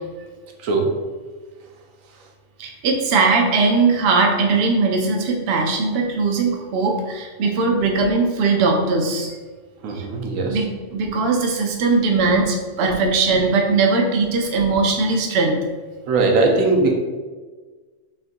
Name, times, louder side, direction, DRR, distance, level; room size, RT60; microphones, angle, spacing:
voice 1, 0.6-1.1 9.8-10.6 16.1-16.9, right 3 dB, 90° right, 2 dB, 1.0 m, -19 dB
voice 2, 2.6-9.3 9.9-10.0 10.5-15.6, right 3 dB, 60° right, 2 dB, 0.8 m, -19 dB
5.7 x 2.5 x 2.6 m, 1.4 s
omnidirectional pair, 1.3 m